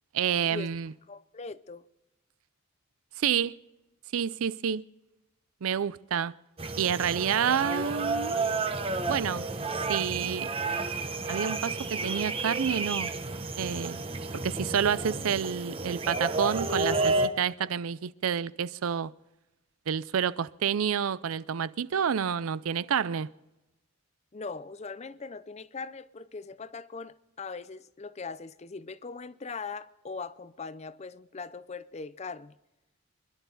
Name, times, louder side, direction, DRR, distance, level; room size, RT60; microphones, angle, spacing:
voice 1, 0.1-0.9 3.2-3.5 4.1-4.8 5.6-6.3 6.8-8.5 9.1-9.5 9.9-10.5 11.3-13.1 13.6-14.0 14.4-19.1 19.9-23.3, right 7 dB, 80° right, 0.5 m, -29 dB
voice 2, 1.1-1.8 24.3-32.5, left 4 dB, 30° left, 0.5 m, -40 dB
sound 1, 6.6-17.3, right 3 dB, 25° right, 0.9 m, -31 dB
25.5 x 11.5 x 4.0 m
head